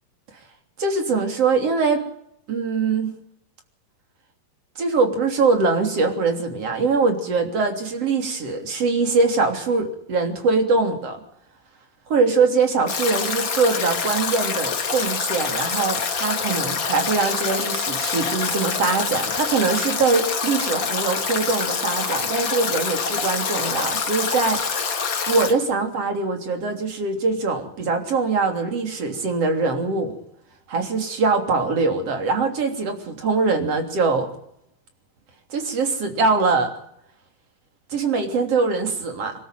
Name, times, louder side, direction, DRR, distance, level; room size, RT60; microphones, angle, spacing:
voice 1, 0.8-2.0 2.5-3.1 4.8-11.2 12.1-24.6 25.3-30.1 30.7-34.3 35.5-36.7 37.9-39.3, right 4 dB, 45° right, 5 dB, 4.1 m, -22 dB
Stream / Drip / Trickle dribble, 12.9-25.5, left 5 dB, 40° left, 2.4 m, -26 dB
25.5 x 13.0 x 9.3 m, 0.73 s
omnidirectional pair, 4.2 m